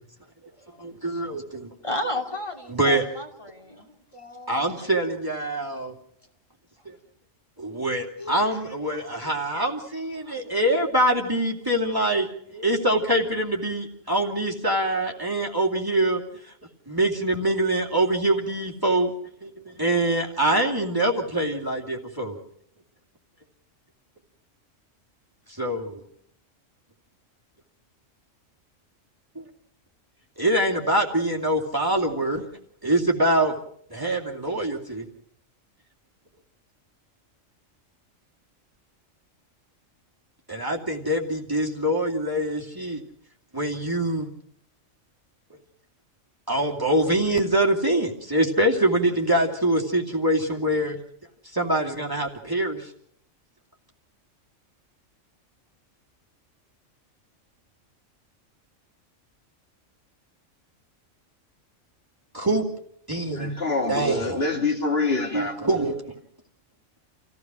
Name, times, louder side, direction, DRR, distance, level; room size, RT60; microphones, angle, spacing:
voice 1, 0.8-1.7 2.7-3.1 4.5-5.9 6.8-6.9 7.6-16.5 16.9-19.1 19.4-22.4 25.5-26.0 29.4-29.5 30.4-32.4 32.8-33.6 33.9-35.1 40.5-43.0 43.5-44.3 46.5-51.0 51.5-52.9 62.3-62.7 63.1-63.5 63.9-64.4 65.3-66.0, right 1 dB, 15° right, 0 dB, 2.5 m, -24 dB
voice 2, 1.8-4.9 8.2-9.3, left 1 dB, 25° left, 4 dB, 2.6 m, -34 dB
voice 3, 63.3-65.6, left 3 dB, 50° left, 2 dB, 2.1 m, -26 dB
28.0 x 16.0 x 6.2 m, 0.67 s
omnidirectional pair, 1.3 m